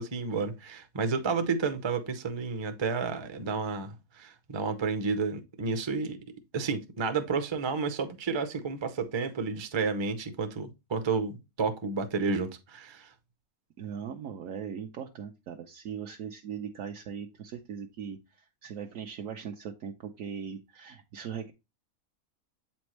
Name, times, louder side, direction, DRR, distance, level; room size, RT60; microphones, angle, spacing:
voice 1, 0.0-6.2 6.5-13.1, right 4 dB, 35° right, 0.4 m, -31 dB
voice 2, 13.8-21.5, right 7 dB, 70° right, 1.1 m, -39 dB
7.9 x 4.3 x 3.0 m
omnidirectional pair, 1.5 m